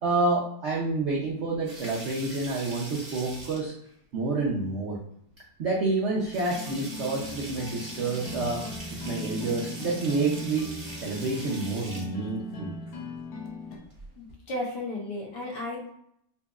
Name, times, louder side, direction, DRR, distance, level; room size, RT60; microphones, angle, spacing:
voice 1, 0.0-3.7 4.1-5.0 5.6-8.6 8.9-10.7 11.0-12.7, right 3 dB, 85° right, -3 dB, 0.6 m, -28 dB
sound 1, 1.5-3.9 5.3-5.4 5.8-5.9 6.2-12.1 13.8-14.3, right 1 dB, 30° right, 0.6 m, -42 dB
sound 2, 6.5-13.8, left 2 dB, 90° left, 1.3 m, -39 dB
voice 2, 14.2-15.9, left 1 dB, 70° left, -3 dB, 1.6 m, -34 dB
4.1 x 2.7 x 2.3 m, 0.70 s
omnidirectional pair, 2.0 m